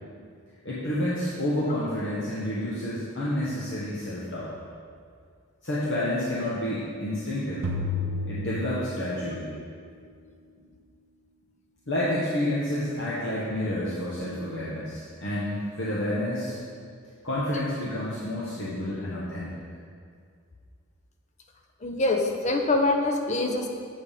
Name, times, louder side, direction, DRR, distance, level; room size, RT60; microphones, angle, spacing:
voice 1, 0.6-4.5 5.6-7.7 8.3-9.5 11.9-16.6 17.2-19.5, left 1 dB, 55° left, -8 dB, 1.0 m, -29 dB
sound 1, 7.6-9.4, left 2 dB, 75° right, 0.7 m, -31 dB
voice 2, 21.8-23.7, left 2 dB, 30° left, 2 dB, 0.6 m, -24 dB
7.8 x 3.6 x 6.6 m, 2.2 s
head